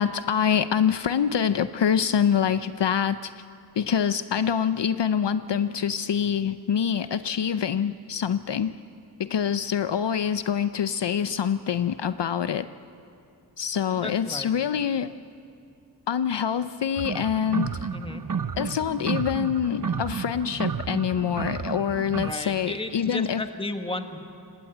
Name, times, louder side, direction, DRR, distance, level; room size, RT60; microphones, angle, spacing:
voice 1, 0.0-3.3 3.8-8.7 9.2-12.7 13.6-15.1 16.1-17.9 18.6-23.4, left 8 dB, 70° left, 13 dB, 0.6 m, -25 dB
voice 2, 14.0-14.5 17.9-18.2 22.2-24.2, left 2 dB, 10° left, 6 dB, 1.6 m, -33 dB
sound 1, 17.0-22.3, right 6 dB, 45° right, 0.9 m, -31 dB
29.5 x 18.0 x 8.0 m, 2.5 s
wide cardioid pair, 75°, 44 cm